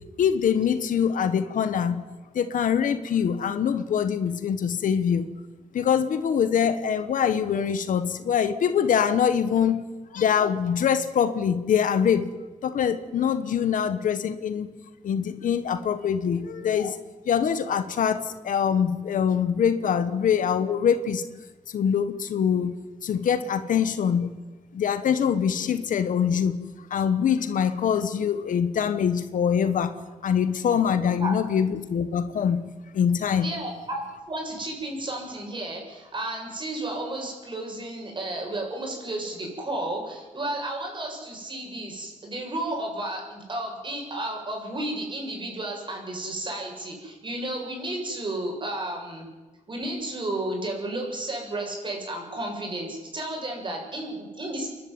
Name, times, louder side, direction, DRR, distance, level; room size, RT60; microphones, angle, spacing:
voice 1, 0.2-2.0 2.3-5.3 5.7-9.8 10.1-12.3 12.6-14.7 15.0-17.0 17.3-21.2 21.7-22.8 23.0-24.4 24.7-26.6 26.9-29.9 30.2-32.6 32.9-33.5, left 7 dB, 85° left, 11 dB, 1.2 m, -24 dB
voice 2, 33.4-34.0 34.3-49.3 49.7-54.7, right 1 dB, 35° right, 1 dB, 7.1 m, -32 dB
29.0 x 11.5 x 9.6 m, 1.2 s
wide cardioid pair, 115°, 13 cm